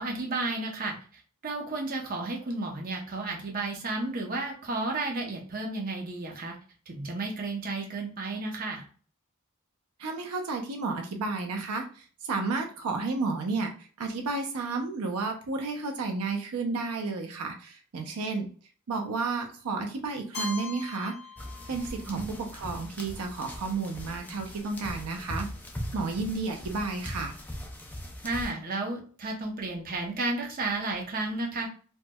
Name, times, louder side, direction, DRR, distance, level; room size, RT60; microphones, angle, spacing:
voice 1, 0.0-6.5 6.9-8.8 22.1-22.3 28.2-31.7, right 2 dB, 40° right, 0 dB, 0.7 m, -32 dB
voice 2, 10.0-18.5 18.9-21.1 21.7-25.5 25.9-27.3, right 3 dB, 85° right, 4 dB, 0.5 m, -32 dB
Keyboard (musical), 20.3-22.3, left 4 dB, 65° left, 1.1 m, -40 dB
sound 1, 21.4-28.5, equal, 10° left, 0.4 m, -40 dB
4.3 x 2.1 x 2.2 m, 0.41 s
head